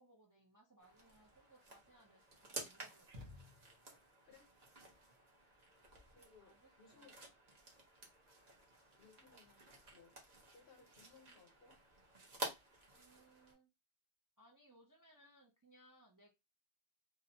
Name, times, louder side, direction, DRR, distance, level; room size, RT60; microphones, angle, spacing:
voice 1, 0.0-3.1 6.4-7.1 12.9-13.7 14.4-16.3, right 1 dB, 30° right, -1 dB, 0.4 m, -67 dB
sound 1, 0.8-13.5, right 1 dB, 45° right, 0.8 m, -52 dB
sound 2, 3.1-4.1, left 2 dB, 75° right, 1.0 m, -55 dB
voice 2, 6.1-7.2 7.9-8.0 9.0-10.1 10.5-11.7, left 5 dB, 70° left, 4 dB, 1.0 m, -65 dB
2.7 x 2.1 x 2.7 m, 0.23 s
omnidirectional pair, 1.0 m